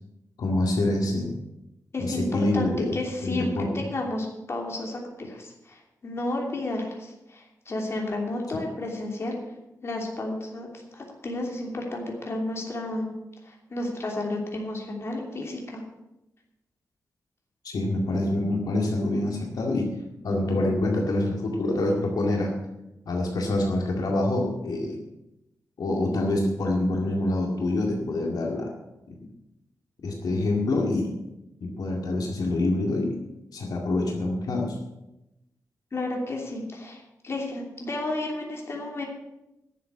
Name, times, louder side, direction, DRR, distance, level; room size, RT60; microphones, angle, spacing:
voice 1, 0.4-1.3 2.0-2.9 3.2-3.7 17.6-19.9 20.2-22.5 23.1-25.0 25.8-28.7 30.0-31.1 31.6-33.2 33.5-34.8, left 2 dB, 80° left, 0 dB, 2.1 m, -26 dB
voice 2, 1.9-9.4 9.8-13.1 13.4-15.8 35.9-39.1, left 2 dB, 40° left, 0 dB, 2.9 m, -32 dB
11.5 x 7.5 x 8.5 m, 0.93 s
wide cardioid pair, 125°, 6 cm